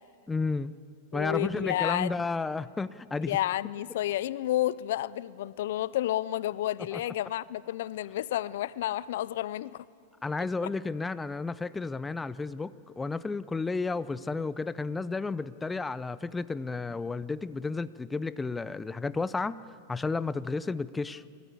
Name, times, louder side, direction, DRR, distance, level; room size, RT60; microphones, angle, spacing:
voice 1, 0.3-0.7 1.1-3.4 6.9-7.0 10.2-19.6 19.9-21.2, left 3 dB, 10° left, 17 dB, 0.6 m, -32 dB
voice 2, 1.1-2.1 3.3-9.9 10.6-10.7, left 13 dB, 70° left, 20 dB, 0.4 m, -31 dB
28.0 x 13.5 x 8.5 m, 2.5 s
hypercardioid pair, 115°, 0 cm